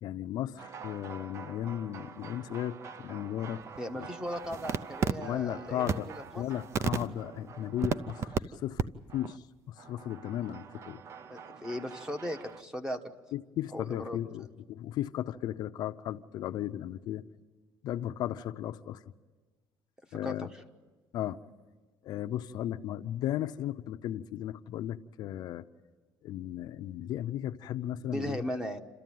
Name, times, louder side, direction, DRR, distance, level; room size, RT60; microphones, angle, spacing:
voice 1, 0.0-3.6 3.9-4.1 5.2-6.1 6.4-8.9 9.1-11.0 13.3-17.3 17.8-19.0 20.1-20.5 21.1-21.4 22.0-25.7 26.2-28.5, left 12 dB, 60° left, 9 dB, 0.6 m, -35 dB
sound 1, 0.6-8.4 8.8-8.9 9.1-9.4 9.8-12.6, right 6 dB, 35° right, 0.6 m, -38 dB
voice 2, 3.8-6.4 11.3-13.0 13.7-14.2 20.1-20.4 28.1-28.8, equal, 10° right, 7 dB, 1.2 m, -37 dB
28.5 x 13.5 x 9.3 m, 1.3 s
cardioid pair, 145°, 8 cm